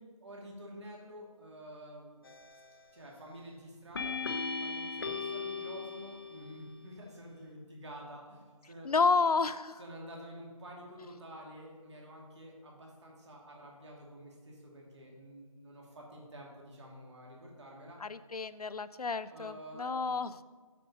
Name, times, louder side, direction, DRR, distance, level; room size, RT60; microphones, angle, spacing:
voice 1, 0.0-2.2 2.9-4.2 4.6-8.9 9.8-18.0 19.3-20.0, equal, 50° right, -2 dB, 2.3 m, -49 dB
sound 1, 2.2-2.7 3.9-6.7, left 4 dB, 40° left, 0.7 m, -38 dB
voice 2, 8.8-9.8 18.0-20.3, left 4 dB, 85° left, 15 dB, 0.5 m, -30 dB
8.4 x 5.2 x 5.5 m, 1.4 s
figure-of-eight pair, 160°, 19 cm